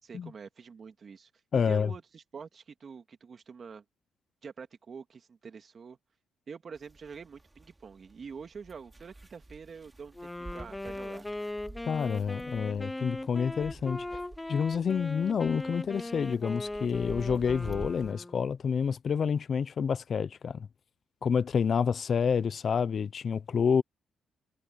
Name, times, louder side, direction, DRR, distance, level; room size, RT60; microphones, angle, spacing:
voice 1, 0.0-3.8 4.4-6.0 6.5-11.3, right 6 dB, 45° right, 2.5 m, -46 dB
voice 2, 1.5-1.9 11.9-14.2 14.5-20.7 21.2-23.8, left 6 dB, 50° left, 0.8 m, -28 dB
sound 1, 6.7-18.1, right 2 dB, 15° right, 5.0 m, -49 dB
Wind instrument woodwind instrument, 10.1-18.5, left 1 dB, 10° left, 0.9 m, -39 dB
cardioid pair, 90°, 0 cm